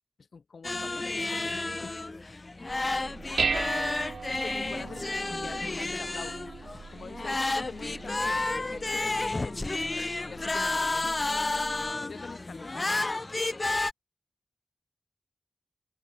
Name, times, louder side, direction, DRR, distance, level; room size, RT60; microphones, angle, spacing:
voice 1, 0.2-2.0 4.3-6.5 6.9-9.6 10.2-11.1 11.9-13.2, left 5 dB, 70° left, 5.0 m, -45 dB
sound 1, 0.6-13.9, left 2 dB, 35° left, 0.4 m, -31 dB
Dishes pots and pans, 2.7-11.9, right 5 dB, 80° right, 2.0 m, -38 dB
open air
wide cardioid pair, 90°, 0 cm